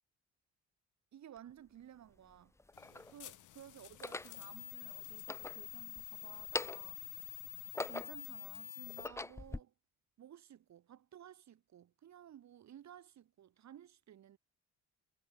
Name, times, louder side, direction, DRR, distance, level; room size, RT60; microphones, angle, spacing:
voice 1, 1.1-2.5 2.9-7.4 7.8-9.7 10.2-14.4, right 10 dB, 65° right, 3.3 m, -56 dB
sound 1, 1.4-1.5 2.3-3.1 3.9-4.4 5.1-6.1 6.4-7.0 7.5-8.3 8.8-9.6, left 2 dB, 10° left, 0.6 m, -42 dB
sound 2, 2.7-9.1, left 14 dB, 85° left, 3.2 m, -48 dB
cardioid pair, 90°, 30 cm